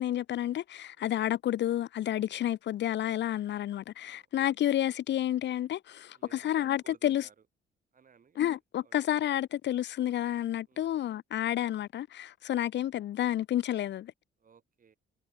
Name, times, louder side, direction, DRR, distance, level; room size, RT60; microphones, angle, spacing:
voice 1, 0.0-7.2 8.4-14.1, left 12 dB, 65° left, 0.7 m, -30 dB
voice 2, 6.1-7.3 7.9-8.9 10.7-11.0 14.4-15.0, right 6 dB, 45° right, 3.2 m, -59 dB
cardioid pair, 90°, 20 cm